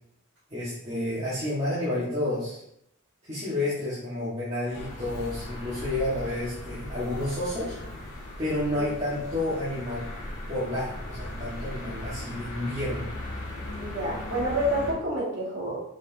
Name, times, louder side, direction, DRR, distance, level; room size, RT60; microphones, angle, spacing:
voice 1, 0.5-2.6 3.3-7.7 8.4-10.1 10.5-13.1, left 1 dB, 30° right, -10 dB, 1.8 m, -30 dB
sound 1, 4.7-14.9, left 1 dB, 35° left, 1.8 m, -38 dB
voice 2, 13.8-15.8, equal, 60° right, -5 dB, 2.2 m, -28 dB
6.3 x 5.2 x 2.8 m, 0.74 s
head